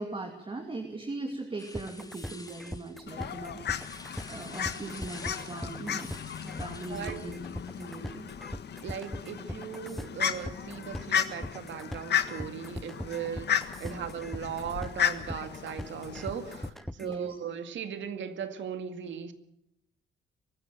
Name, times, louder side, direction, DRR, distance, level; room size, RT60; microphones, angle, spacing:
voice 1, 0.0-6.1 6.4-7.3 7.8-8.3 13.8-14.2 17.0-17.4, right 3 dB, 25° right, 4 dB, 2.7 m, -40 dB
sound 1, 1.6-8.2, left 2 dB, 20° left, 4.0 m, -49 dB
sound 2, 1.7-17.2, equal, ahead, 0.7 m, -40 dB
Fowl, 3.1-16.7, left 9 dB, 55° left, 1.6 m, -35 dB
voice 2, 6.9-7.2 8.8-19.3, right 8 dB, 70° right, 9 dB, 2.2 m, -38 dB
24.0 x 13.5 x 9.0 m, 0.79 s
cardioid pair, 90°, 20 cm